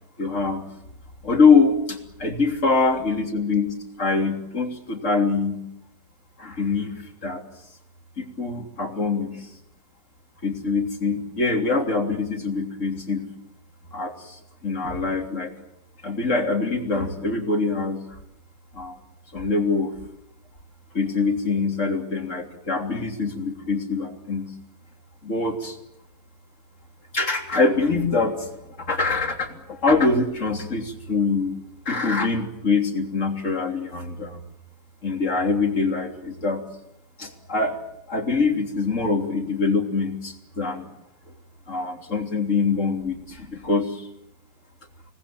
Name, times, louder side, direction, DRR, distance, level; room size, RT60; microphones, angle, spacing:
voice 1, 0.2-0.6 1.2-5.6 6.4-7.4 8.2-9.5 10.4-13.3 13.9-15.5 16.0-18.0 18.7-19.0 19.3-19.9 20.9-24.5 25.2-25.8 27.1-28.5 28.8-31.5 31.9-34.4 35.0-36.6 37.2-37.8 38.1-40.9 41.7-44.1, left 4 dB, 40° left, 3 dB, 3.6 m, -24 dB
27.0 x 20.0 x 8.8 m, 0.82 s
omnidirectional pair, 2.1 m